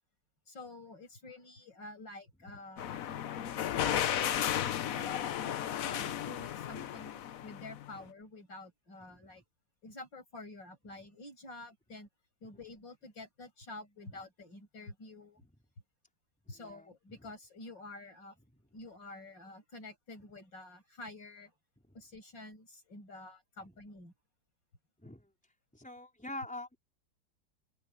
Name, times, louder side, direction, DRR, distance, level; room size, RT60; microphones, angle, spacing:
voice 1, 0.5-3.0 3.8-4.4 4.9-9.4 9.8-12.1 12.4-15.4 16.5-18.4 18.7-21.5 21.9-24.1, left 2 dB, 80° left, 8.8 m, -49 dB
sound 1, 2.8-8.0, left 10 dB, 60° left, 1.0 m, -34 dB
voice 2, 16.5-16.9 21.9-22.0 25.0-25.3 25.7-26.8, left 1 dB, 5° left, 4.4 m, -45 dB
open air
omnidirectional pair, 2.0 m